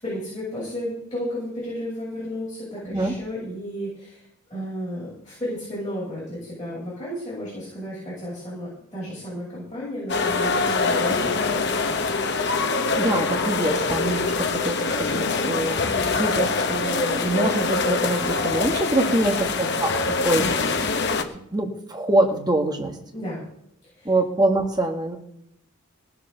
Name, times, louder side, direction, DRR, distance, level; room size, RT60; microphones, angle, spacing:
voice 1, 0.0-4.2 4.5-12.2 19.0-19.4 23.1-23.4 23.9-24.1, equal, 20° left, -9 dB, 7.6 m, -33 dB
sound 1, 10.1-21.2, left 4 dB, 55° left, 1.2 m, -24 dB
voice 2, 12.7-20.9 21.5-23.0 24.0-25.2, right 2 dB, 20° right, 3 dB, 1.7 m, -25 dB
18.0 x 7.2 x 6.8 m, 0.73 s
head